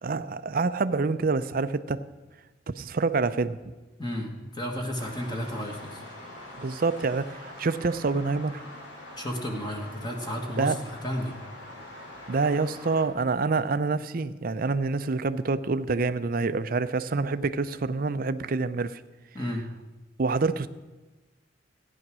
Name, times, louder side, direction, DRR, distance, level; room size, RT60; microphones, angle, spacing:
voice 1, 0.0-2.0 2.8-3.6 6.6-8.6 10.6-10.8 12.3-19.0 20.2-20.7, right 3 dB, 50° right, 12 dB, 0.5 m, -27 dB
voice 2, 4.0-6.0 9.2-10.7 11.0-11.3 19.3-19.6, equal, 25° left, 1 dB, 1.5 m, -32 dB
sound 1, 4.9-13.1, left 1 dB, 65° left, 2.9 m, -44 dB
15.0 x 9.8 x 6.2 m, 1.2 s
head